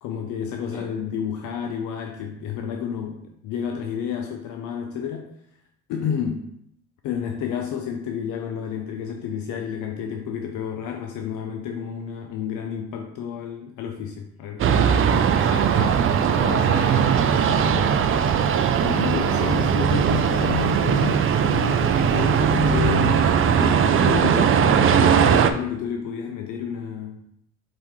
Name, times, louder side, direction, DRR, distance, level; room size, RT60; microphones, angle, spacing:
voice 1, 0.0-5.3 5.9-6.5 7.0-15.2 18.8-27.2, left 7 dB, 80° left, 3 dB, 0.5 m, -30 dB
sound 1, 14.6-25.5, right 7 dB, 45° right, 0.4 m, -19 dB
voice 2, 15.4-18.1, left 1 dB, 45° left, -3 dB, 1.8 m, -35 dB
4.8 x 3.6 x 3.0 m, 0.74 s
cardioid pair, 90°, 30 cm